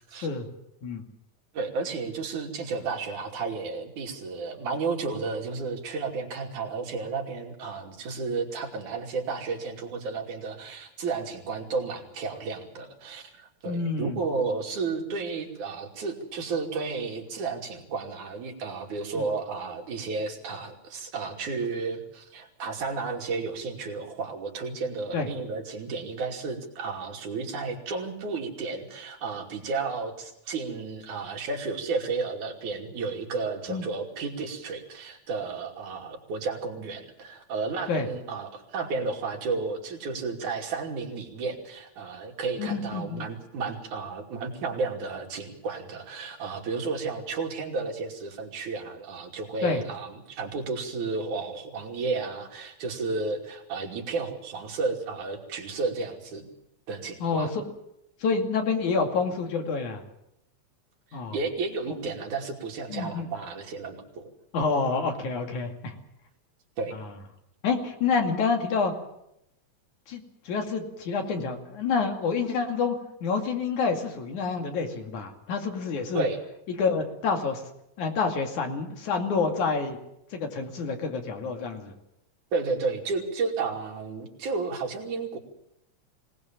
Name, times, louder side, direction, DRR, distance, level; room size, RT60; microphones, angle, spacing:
voice 1, 1.5-56.5 56.9-57.5 61.1-64.3 66.8-67.0 76.1-76.4 82.5-85.4, right 4 dB, 90° right, 1 dB, 4.2 m, -32 dB
voice 2, 13.7-14.2 19.2-19.3 25.1-25.3 33.7-33.8 37.9-38.1 42.6-43.3 49.6-49.8 57.2-57.6 58.2-60.0 61.1-61.4 62.9-63.3 64.5-66.0 66.9-67.1 67.6-68.9 70.1-76.3 76.8-77.6 78.0-80.0 80.3-81.9, left 4 dB, 90° left, 4 dB, 3.8 m, -28 dB
24.0 x 19.0 x 7.4 m, 0.80 s
omnidirectional pair, 3.4 m